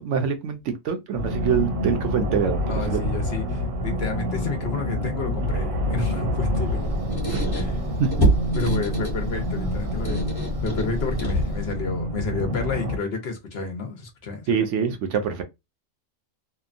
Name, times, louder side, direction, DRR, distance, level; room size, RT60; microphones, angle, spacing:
voice 1, 0.0-3.0 7.3-7.4 8.0-8.3 14.5-15.4, right 7 dB, 70° right, 0.8 m, -25 dB
sound 1, 1.1-13.0, left 1 dB, 85° right, 1.4 m, -27 dB
voice 2, 2.6-7.0 7.5-7.7 8.6-10.2 10.6-14.6, left 4 dB, 60° left, 0.8 m, -31 dB
Squeak, 6.5-11.8, right 1 dB, 20° left, 0.8 m, -27 dB
2.8 x 2.1 x 2.5 m
omnidirectional pair, 1.4 m